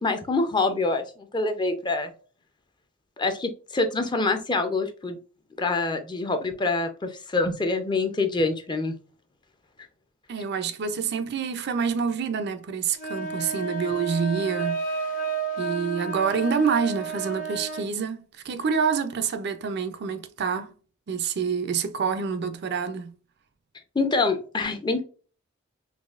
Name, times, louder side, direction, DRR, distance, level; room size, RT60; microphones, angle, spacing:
voice 1, 0.0-2.1 3.2-5.2 5.6-8.9 23.9-25.0, left 3 dB, 20° left, 0.5 m, -25 dB
voice 2, 10.3-15.1 15.6-20.7 21.1-23.1, right 6 dB, 55° right, 0.4 m, -27 dB
sound 1, 12.9-17.9, right 4 dB, 40° left, 0.9 m, -31 dB
4.0 x 2.7 x 2.3 m
head